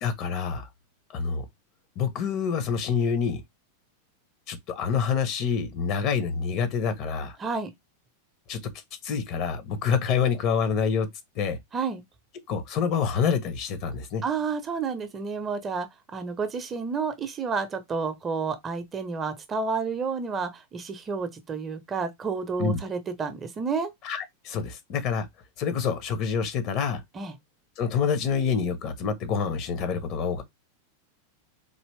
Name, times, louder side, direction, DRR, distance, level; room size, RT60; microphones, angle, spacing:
voice 1, 0.0-0.7 1.1-1.4 2.0-3.4 4.5-7.4 8.5-8.6 9.0-11.1 11.3-11.6 12.5-14.2 22.6-22.8 24.0-25.3 25.6-27.0 27.8-30.4, left 6 dB, 40° left, 1.0 m, -27 dB
voice 2, 7.4-7.7 11.7-12.0 14.2-23.9 27.1-27.3, right 5 dB, 25° right, 0.8 m, -30 dB
4.0 x 2.9 x 3.2 m
figure-of-eight pair, 90°, 0 cm